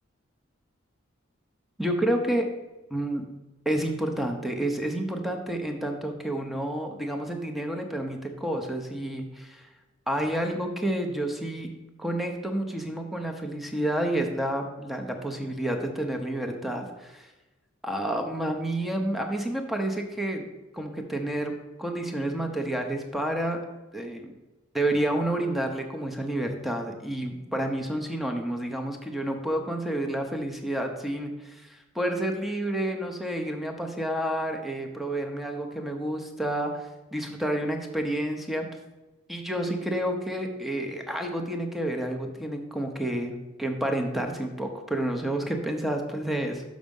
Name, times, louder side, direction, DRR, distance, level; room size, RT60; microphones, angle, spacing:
voice 1, 1.8-2.5 2.9-3.2 3.6-9.7 10.1-11.7 12.0-17.3 17.8-20.5 20.7-23.6 23.9-24.3 24.7-38.7 39.3-46.6, right 1 dB, ahead, 3 dB, 0.8 m, -29 dB
6.4 x 5.9 x 5.3 m, 1.1 s
head